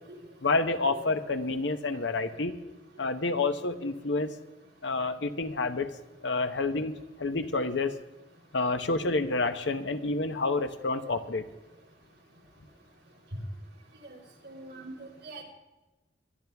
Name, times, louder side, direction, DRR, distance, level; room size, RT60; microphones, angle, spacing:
voice 1, 0.4-2.5 3.0-4.3 4.8-5.9 6.2-6.9 7.2-8.0 8.5-11.4, left 3 dB, 80° left, 8 dB, 1.0 m, -28 dB
voice 2, 14.4-15.4, right 2 dB, 75° right, -2 dB, 4.1 m, -44 dB
23.5 x 11.0 x 3.5 m, 1.0 s
head